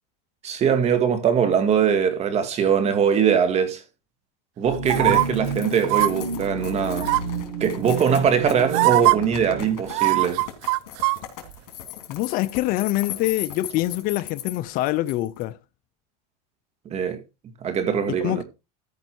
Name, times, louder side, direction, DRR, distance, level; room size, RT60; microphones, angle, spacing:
voice 1, 0.4-3.8 4.6-7.1 7.6-10.4 16.9-17.2 17.6-18.4, right 7 dB, 35° right, 1.9 m, -22 dB
sound 1, 4.6-9.7, right 4 dB, 85° right, 6.7 m, -31 dB
sound 2, 4.9-15.4, left 12 dB, 75° left, 3.3 m, -38 dB
sound 3, 4.9-5.2 5.8-6.1 7.0-7.4 8.3-8.4 8.7-9.2 9.9-11.2 11.5-11.6, right 22 dB, 55° right, 0.6 m, -20 dB
voice 2, 12.1-15.6 18.1-18.4, left 16 dB, 45° left, 0.6 m, -25 dB
13.5 x 5.3 x 4.5 m
supercardioid pair, 130°, 20 cm